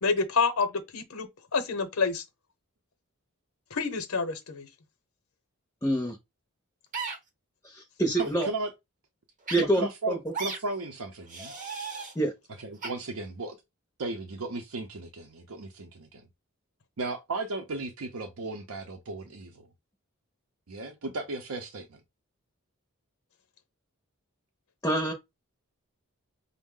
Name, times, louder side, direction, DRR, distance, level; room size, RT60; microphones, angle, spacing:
voice 1, 0.0-2.2 3.7-4.7, left 4 dB, 80° left, 0.8 m, -28 dB
voice 2, 5.8-6.2 7.6-8.5 9.5-10.2 12.2-12.3 24.8-25.1, right 1 dB, 10° left, 0.5 m, -26 dB
sound 1, 6.9-7.2 8.1-8.3 9.5-9.6 10.3-10.6 11.3-12.1 12.8-12.9, right 4 dB, 35° right, 0.8 m, -35 dB
voice 3, 8.2-8.7 9.5-11.5 12.6-13.6 14.0-16.3 17.0-19.7 20.7-22.0, right 2 dB, 80° right, 0.6 m, -35 dB
5.3 x 2.1 x 3.6 m
head